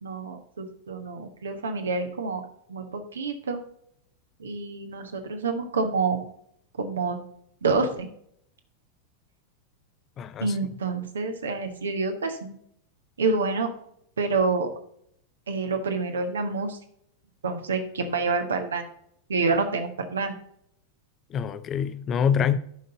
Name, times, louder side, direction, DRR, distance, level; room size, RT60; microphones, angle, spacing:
voice 1, 0.0-2.4 2.7-3.6 4.4-6.3 6.8-7.3 7.6-8.1 10.4-12.5 13.2-13.7 14.2-14.7 15.5-16.8 17.4-18.9 19.3-20.3, right 4 dB, 70° right, 1.2 m, -27 dB
voice 2, 10.2-10.5 21.3-22.6, left 7 dB, 30° left, 0.6 m, -25 dB
11.0 x 5.4 x 3.9 m
figure-of-eight pair, 90°, 0 cm